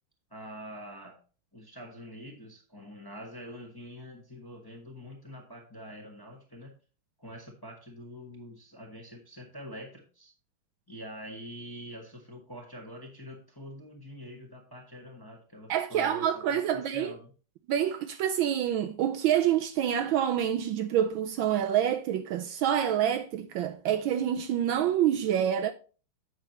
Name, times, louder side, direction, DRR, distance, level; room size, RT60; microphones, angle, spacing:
voice 1, 0.3-1.2 1.5-6.7 7.2-10.3 10.9-17.3, equal, 15° left, 1.1 m, -45 dB
voice 2, 15.7-17.1 17.7-25.7, right 10 dB, 75° right, 1.2 m, -27 dB
8.1 x 6.2 x 2.9 m
omnidirectional pair, 2.4 m